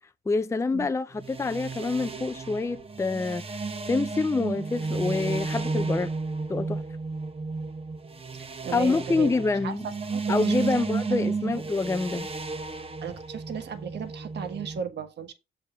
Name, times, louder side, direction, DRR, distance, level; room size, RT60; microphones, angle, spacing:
voice 1, 0.3-3.4 3.9-6.1 6.5-6.8 8.7-9.9 10.3-12.3, left 3 dB, 15° left, 0.5 m, -26 dB
sound 1, 1.1-14.8, right 4 dB, 30° right, 1.0 m, -32 dB
voice 2, 8.4-9.3 9.6-10.9 11.5-11.6 13.0-15.3, right 7 dB, 60° right, 1.5 m, -36 dB
7.4 x 3.5 x 6.0 m
cardioid pair, 90°, 20 cm